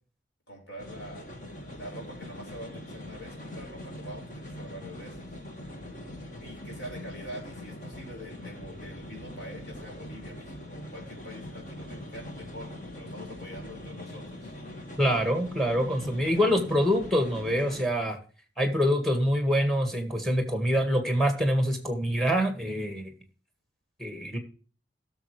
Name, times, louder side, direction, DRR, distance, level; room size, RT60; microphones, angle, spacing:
voice 1, 0.5-1.3 1.7-5.2 6.4-14.5, equal, 70° left, 0 dB, 5.1 m, -44 dB
sound 1, 0.8-17.8, left 1 dB, 45° left, 1.8 m, -42 dB
voice 2, 15.0-18.2 18.6-23.1 24.0-24.4, equal, ahead, 5 dB, 1.8 m, -25 dB
16.5 x 6.9 x 3.2 m, 0.39 s
head